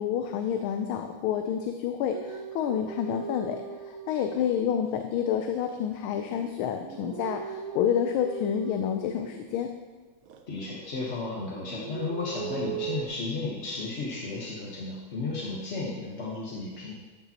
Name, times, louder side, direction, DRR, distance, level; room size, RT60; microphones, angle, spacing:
voice 1, 0.0-9.7, left 9 dB, 85° left, 6 dB, 1.4 m, -29 dB
sound 1, 2.1-5.0 5.6-9.8 10.2-11.2 11.5-13.1, right 7 dB, 75° right, 0.8 m, -40 dB
voice 2, 10.5-16.9, left 3 dB, 40° left, -4 dB, 1.1 m, -34 dB
13.0 x 6.7 x 2.9 m, 1.3 s
omnidirectional pair, 2.3 m